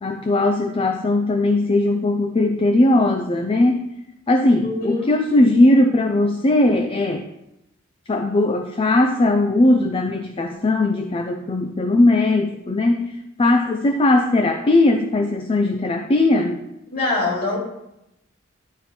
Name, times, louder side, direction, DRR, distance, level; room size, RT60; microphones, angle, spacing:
voice 1, 0.0-3.9 4.3-7.3 8.1-16.6, left 2 dB, 25° left, 6 dB, 0.4 m, -19 dB
voice 2, 4.6-5.1 16.9-17.6, left 2 dB, 50° left, -2 dB, 2.7 m, -23 dB
11.0 x 4.3 x 4.2 m, 0.88 s
head